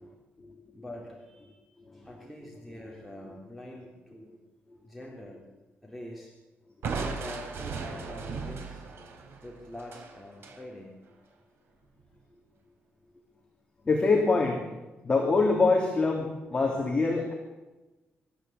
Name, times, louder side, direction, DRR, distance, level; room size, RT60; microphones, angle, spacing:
voice 1, 0.0-0.5 1.9-2.1 4.7-4.8 13.8-14.7 15.0-17.3, left 3 dB, 25° left, 0 dB, 3.0 m, -25 dB
voice 2, 0.7-1.6 1.9-4.3 4.8-5.4 5.8-6.3 6.9-8.9 9.4-10.9, left 1 dB, ahead, -2 dB, 3.5 m, -44 dB
Crushing, 6.8-10.6, right 4 dB, 65° right, 3.8 m, -37 dB
26.0 x 13.5 x 8.1 m, 1.1 s
wide cardioid pair, 170°, 4 cm